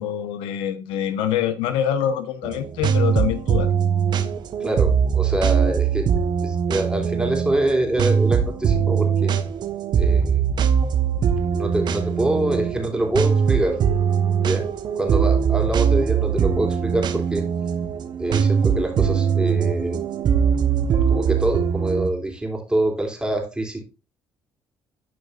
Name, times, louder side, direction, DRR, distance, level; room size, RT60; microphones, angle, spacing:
voice 1, 0.0-3.7, left 9 dB, 85° left, 1.0 m, -25 dB
sound 1, 2.4-22.1, right 7 dB, 55° right, 1.2 m, -21 dB
voice 2, 4.6-9.3 10.0-10.4 11.4-13.8 14.4-14.7 15.0-17.4 18.2-20.0 21.1-23.8, right 1 dB, 10° right, 3.4 m, -25 dB
12.5 x 5.1 x 2.5 m
supercardioid pair, 80°, 9 cm